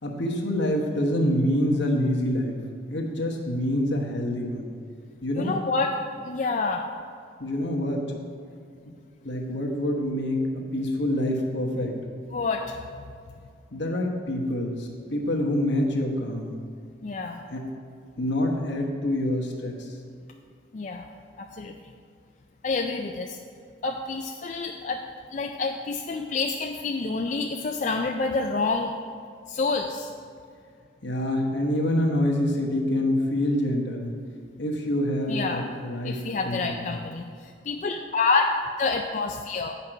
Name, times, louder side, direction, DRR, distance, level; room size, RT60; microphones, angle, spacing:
voice 1, 0.0-2.6 2.9-4.8 5.2-5.6 7.4-8.1 9.2-11.9 13.7-16.6 17.5-17.7 18.2-20.0 31.0-34.2 34.6-36.9, left 1 dB, 75° left, 0 dB, 1.2 m, -26 dB
voice 2, 5.3-5.9 6.3-6.9 12.3-12.8 17.0-17.4 20.7-21.1 21.4-21.7 22.6-23.4 23.8-25.0 25.3-28.9 29.5-30.1 35.3-35.6 36.0-39.7, left 3 dB, 40° left, 2 dB, 0.3 m, -28 dB
8.9 x 5.8 x 4.6 m, 2.2 s
head